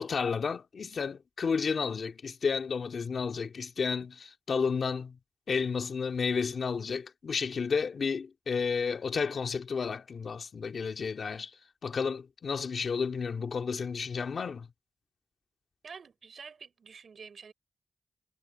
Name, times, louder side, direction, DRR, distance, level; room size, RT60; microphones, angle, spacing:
voice 1, 0.0-5.2 5.5-11.5 11.8-14.7, left 5 dB, 70° left, 2.2 m, -32 dB
voice 2, 15.8-17.5, right 5 dB, 75° right, 3.6 m, -48 dB
wide cardioid pair, 90°, 0 cm